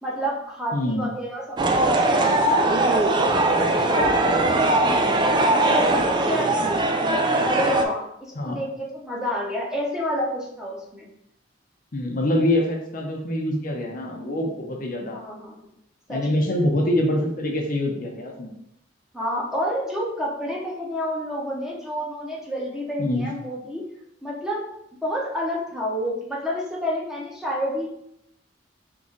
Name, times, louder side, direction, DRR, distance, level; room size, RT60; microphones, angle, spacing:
voice 1, 0.0-5.0 5.5-6.8 7.3-11.1 15.1-15.7 16.1-16.4 19.1-23.8 24.2-24.7 25.0-27.9, equal, 5° right, -4 dB, 0.9 m, -29 dB
voice 2, 0.7-1.1 8.4-8.6 11.9-15.2 16.1-18.5 23.0-23.3, left 1 dB, 50° left, 1 dB, 0.6 m, -25 dB
sound 1, 1.6-7.8, right 2 dB, 25° right, 0.4 m, -20 dB
3.6 x 3.0 x 3.8 m, 0.78 s
head